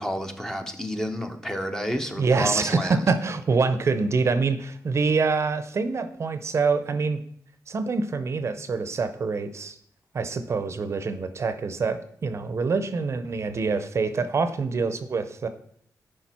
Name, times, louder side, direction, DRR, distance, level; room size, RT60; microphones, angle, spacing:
voice 1, 0.0-3.0, equal, 10° left, 6 dB, 0.7 m, -30 dB
voice 2, 2.2-7.2 7.7-9.8 10.1-15.5, right 4 dB, 45° right, 11 dB, 0.6 m, -25 dB
10.5 x 4.9 x 4.3 m, 0.62 s
wide cardioid pair, 160°, 7 cm